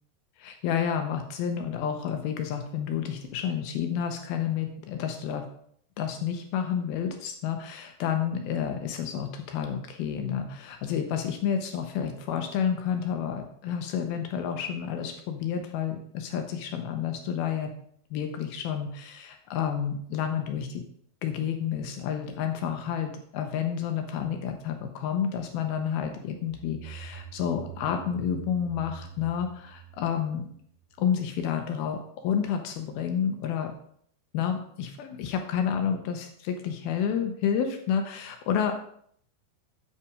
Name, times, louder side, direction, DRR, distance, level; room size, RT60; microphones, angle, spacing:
voice 1, 0.4-5.4 6.0-17.7 18.1-20.8 21.2-30.5 31.0-33.7 34.3-38.7, left 8 dB, 80° left, 5 dB, 2.5 m, -30 dB
sound 1, 26.4-31.0, right 9 dB, 70° right, 2.4 m, -44 dB
8.2 x 5.7 x 4.9 m, 0.65 s
omnidirectional pair, 4.6 m